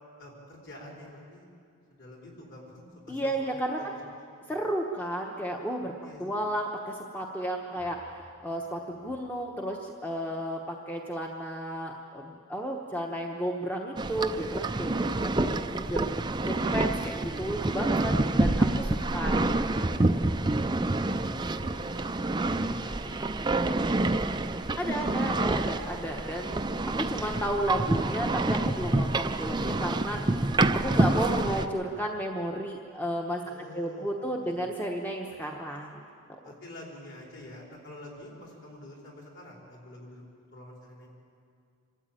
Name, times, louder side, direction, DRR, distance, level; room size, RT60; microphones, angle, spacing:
voice 1, 0.2-1.5 1.9-2.8 3.1-3.5 3.8-4.0 5.8-6.2 20.8-23.3 23.6-24.6 24.9-25.6 33.4-34.7 36.4-40.2 40.5-41.1, left 1 dB, 50° left, -2 dB, 4.7 m, -47 dB
voice 2, 3.1-3.8 4.5-5.9 6.2-16.0 16.4-20.0 24.8-26.6 27.0-30.2 30.7-33.4 33.7-36.0, equal, 10° left, 1 dB, 1.0 m, -33 dB
sound 1, 14.0-31.7, right 2 dB, 20° right, 0.5 m, -27 dB
25.5 x 13.0 x 9.0 m, 2.3 s
head